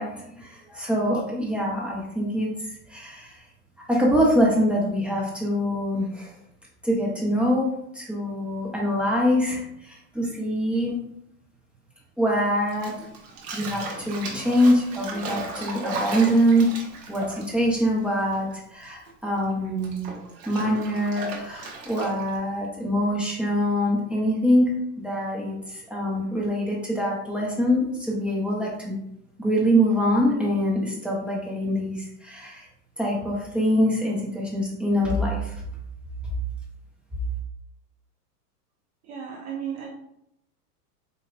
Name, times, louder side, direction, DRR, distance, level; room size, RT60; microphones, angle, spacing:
voice 1, 0.0-3.4 3.9-6.3 6.8-7.7 7.9-11.0 12.2-13.0 13.5-16.7 17.1-20.1 20.5-28.9 29.4-32.7 33.0-35.5, equal, ahead, -5 dB, 0.6 m, -24 dB
Bathtub (filling or washing), 12.7-18.5 18.8-22.4, right 3 dB, 55° right, 1.2 m, -36 dB
voice 2, 39.0-39.9, right 8 dB, 35° right, -2 dB, 0.8 m, -34 dB
4.3 x 3.1 x 2.4 m, 0.76 s
hypercardioid pair, 120°, 48 cm